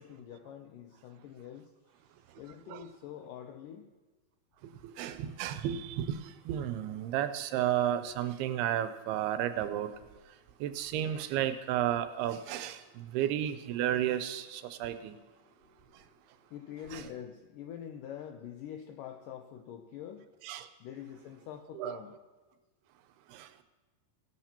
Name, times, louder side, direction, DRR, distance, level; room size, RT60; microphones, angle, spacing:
voice 1, 0.0-1.7 2.3-3.8 15.4-20.3 20.8-22.1, left 9 dB, 80° left, 4 dB, 1.9 m, -46 dB
voice 2, 5.0-6.2 6.5-9.9 10.6-15.2 16.9-17.0 20.4-20.7 21.8-22.0 23.3-23.5, right 11 dB, 85° right, 10 dB, 2.6 m, -32 dB
17.0 x 12.5 x 2.9 m, 1.2 s
omnidirectional pair, 4.5 m